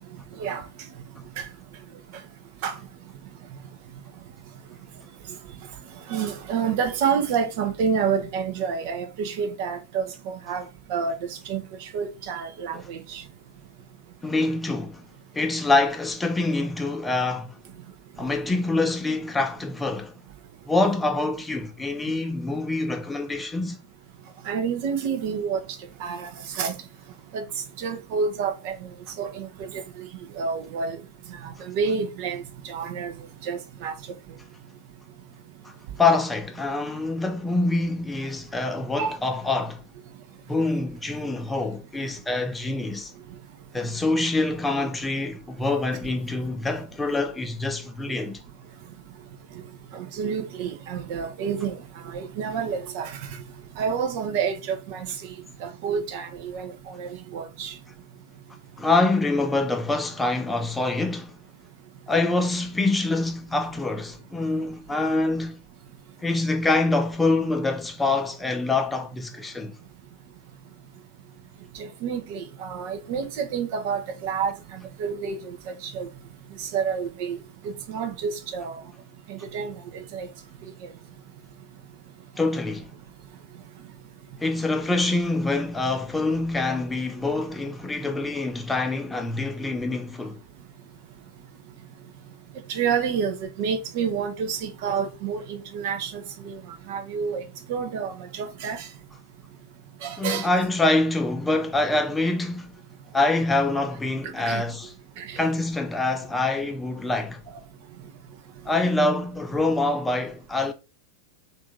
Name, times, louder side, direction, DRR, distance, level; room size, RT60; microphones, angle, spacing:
voice 1, 6.1-10.6 10.9-13.2 24.5-25.6 26.0-26.3 26.6-26.7 27.3-27.4 27.8-28.8 29.2-29.8 30.4-31.0 31.4-33.1 33.4-33.9 39.0-39.2 49.9-51.7 52.1-53.1 53.8-55.1 55.6-57.7 71.8-76.1 76.6-77.4 77.6-78.7 79.3-80.3 86.7-86.8 92.7-96.6 96.9-97.4 97.7-98.9 100.0-100.5 104.4-104.6 105.2-105.4, right 6 dB, 45° right, 0.7 m, -29 dB
voice 2, 14.2-15.0 15.3-17.6 18.2-20.1 20.7-23.8 35.6-35.7 36.0-39.8 40.5-43.1 43.7-48.4 58.8-61.4 62.1-65.6 66.2-69.7 82.4-82.9 84.4-90.4 100.2-102.7 103.1-104.9 105.4-107.4 108.7-110.7, left 2 dB, 10° left, 0.6 m, -25 dB
3.5 x 2.6 x 4.2 m
figure-of-eight pair, 90°, 0 cm